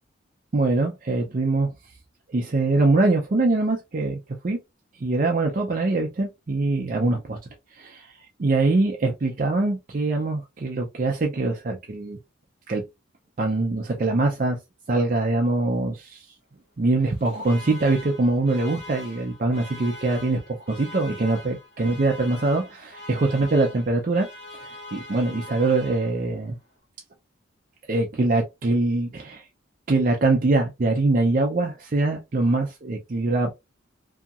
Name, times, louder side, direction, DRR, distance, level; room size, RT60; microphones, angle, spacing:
voice 1, 0.5-1.7 2.3-4.2 4.4-4.6 5.0-7.4 7.7-12.2 12.7-12.8 13.4-14.6 14.9-16.3 16.8-20.4 20.7-24.3 24.6-26.6 27.9-29.4 29.9-33.5, right 2 dB, 40° right, 0.4 m, -23 dB
Alarm, 17.0-26.4, left 1 dB, 55° left, 1.1 m, -42 dB
2.8 x 2.7 x 2.3 m
head